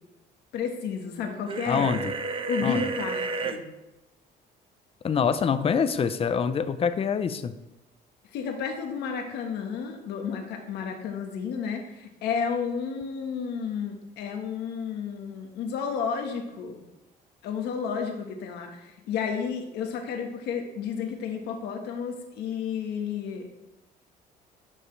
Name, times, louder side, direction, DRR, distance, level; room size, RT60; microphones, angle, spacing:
voice 1, 0.5-1.9 2.5-3.6 8.3-16.8 17.4-23.6, left 6 dB, 80° left, 3 dB, 1.4 m, -32 dB
sound 1, 1.5-3.6, right 4 dB, 30° right, 0.7 m, -31 dB
voice 2, 1.7-2.1 2.6-2.9 5.0-7.5, left 6 dB, 35° left, 11 dB, 0.6 m, -25 dB
11.0 x 5.4 x 3.3 m, 0.96 s
cardioid pair, 110°, 17 cm